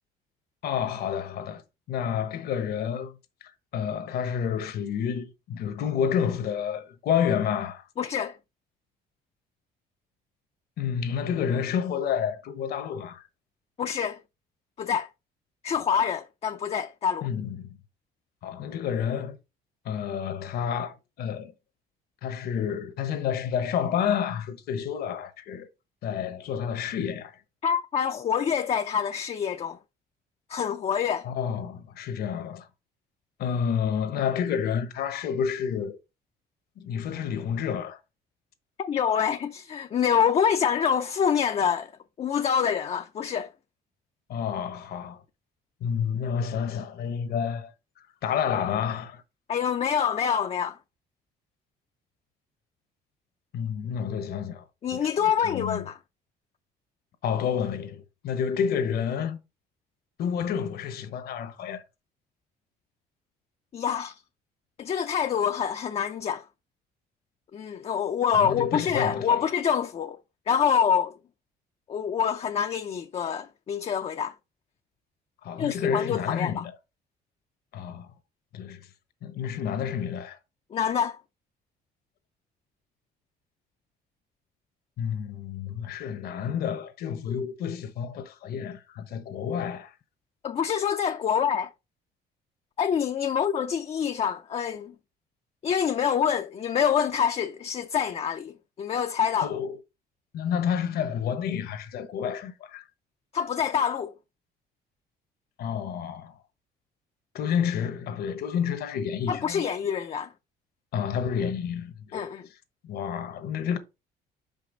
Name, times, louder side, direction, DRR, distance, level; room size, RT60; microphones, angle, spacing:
voice 1, 0.6-1.6 1.9-3.2 3.7-7.9 10.8-13.3 17.2-17.7 18.4-19.4 19.8-21.5 22.2-25.7 26.0-27.4 31.2-32.7 33.4-36.0 36.8-38.0 44.3-45.2 45.8-47.7 48.2-49.2 53.5-54.6 54.9-55.8 57.2-59.4 60.2-61.8 68.3-69.5 75.4-76.7 77.7-78.1 78.5-78.9 79.2-80.4 85.0-89.9 99.4-99.8 100.3-102.8 105.6-106.4 107.3-109.7 110.9-112.4 112.8-113.8, left 8 dB, 70° left, 1.1 m, -29 dB
voice 2, 8.0-8.4 13.8-14.2 14.8-15.1 15.6-17.3 27.6-29.8 30.5-31.3 38.8-41.9 42.2-43.5 49.5-50.8 54.8-56.0 63.7-64.2 64.8-66.4 67.5-70.2 70.5-71.1 71.9-74.3 75.6-76.6 80.7-81.2 90.4-91.7 92.8-94.9 95.6-99.5 103.3-104.1 109.3-110.3 112.1-112.5, left 8 dB, 35° left, 0.5 m, -26 dB
5.7 x 5.3 x 3.9 m
cardioid pair, 110°, 17 cm